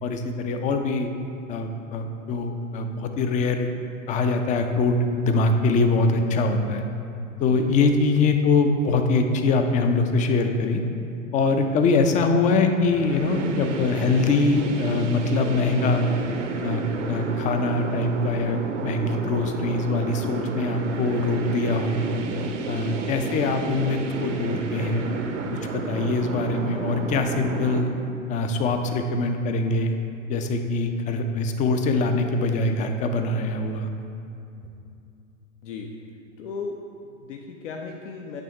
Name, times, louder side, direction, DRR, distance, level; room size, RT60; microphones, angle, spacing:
voice 1, 0.0-1.1 1.5-3.7 4.1-6.8 7.4-10.8 11.3-16.1 16.6-22.1 22.7-25.1 25.7-27.9 28.3-29.9 30.3-33.9, left 3 dB, 20° left, 6 dB, 0.4 m, -23 dB
voice 2, 7.5-8.0 35.6-35.9 36.4-38.4, left 4 dB, 65° left, 1 dB, 0.7 m, -36 dB
sound 1, 12.8-27.8, right 3 dB, 65° right, 0.8 m, -31 dB
9.2 x 3.4 x 5.6 m, 2.6 s
figure-of-eight pair, 95°, 39 cm